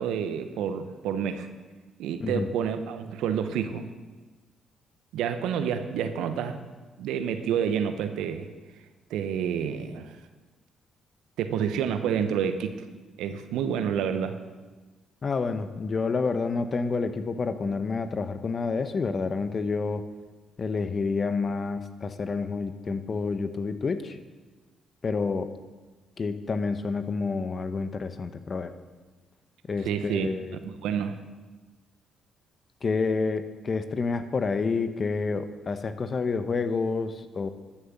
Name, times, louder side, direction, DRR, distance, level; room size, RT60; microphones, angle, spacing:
voice 1, 0.0-1.5 2.0-3.9 5.1-6.6 7.0-8.5 9.1-10.2 11.4-12.8 13.2-14.4 29.8-30.3 30.8-31.2, right 8 dB, 80° right, 9 dB, 0.8 m, -28 dB
voice 2, 15.2-20.1 20.6-24.2 25.0-25.5 26.2-28.7 29.7-30.6 32.8-37.5, left 4 dB, 45° left, 10 dB, 1.0 m, -29 dB
13.0 x 6.6 x 7.1 m, 1.3 s
supercardioid pair, 55°, 0 cm